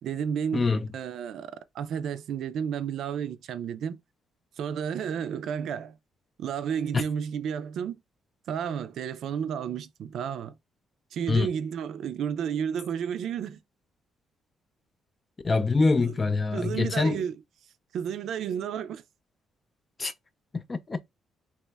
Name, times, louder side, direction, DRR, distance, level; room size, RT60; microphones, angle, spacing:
voice 1, 0.0-0.7 0.9-4.0 4.6-6.0 6.4-8.0 8.5-10.6 11.1-13.6 16.0-16.1 16.5-17.3 17.9-19.0, right 8 dB, 75° right, 0.3 m, -32 dB
voice 2, 0.5-0.9 6.9-7.0 11.3-11.5 15.4-17.2 20.0-20.1 20.5-21.0, left 3 dB, 30° left, 0.4 m, -25 dB
2.9 x 2.1 x 3.3 m
cardioid pair, 90°, 0 cm